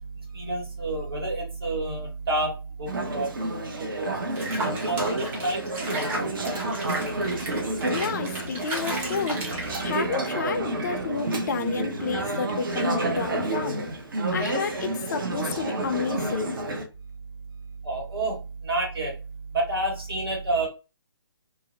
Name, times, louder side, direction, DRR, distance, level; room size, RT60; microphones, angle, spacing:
voice 1, 0.3-3.3 3.8-4.1 4.6-6.5 17.8-19.1 19.5-20.7, right 2 dB, 75° right, 1.4 m, -29 dB
Conversation / Chatter, 2.9-16.8, right 2 dB, 60° right, 0.7 m, -29 dB
Water / Bathtub (filling or washing), 4.4-10.3, right 1 dB, 15° right, 0.5 m, -35 dB
voice 2, 7.9-13.9 14.3-16.7, left 5 dB, 50° left, 0.4 m, -31 dB
2.5 x 2.0 x 2.6 m
figure-of-eight pair, 135°, 13 cm